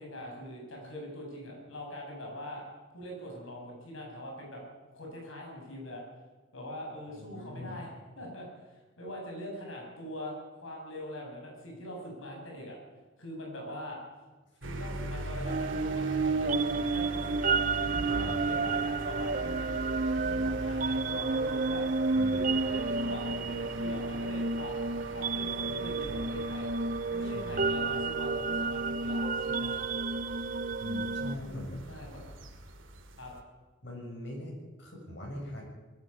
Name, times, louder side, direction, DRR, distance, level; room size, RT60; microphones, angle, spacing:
voice 1, 0.0-2.6 2.9-4.6 4.9-6.0 6.5-7.9 8.2-12.8 13.2-14.0 14.6-19.7 20.1-21.9 22.3-26.7 27.1-29.8 31.9-32.2 33.2-33.3, equal, 85° left, 0 dB, 7.3 m, -42 dB
voice 2, 7.2-7.8 18.0-18.7 20.4-20.5 22.1-22.5 27.2-27.7 30.8-31.8 33.8-35.6, left 1 dB, 60° left, -1 dB, 7.6 m, -41 dB
sound 1, 14.6-33.4, right 1 dB, 75° right, 2.5 m, -42 dB
sound 2, 15.5-31.3, right 3 dB, 40° right, 0.6 m, -31 dB
20.5 x 15.5 x 8.6 m, 1.3 s
head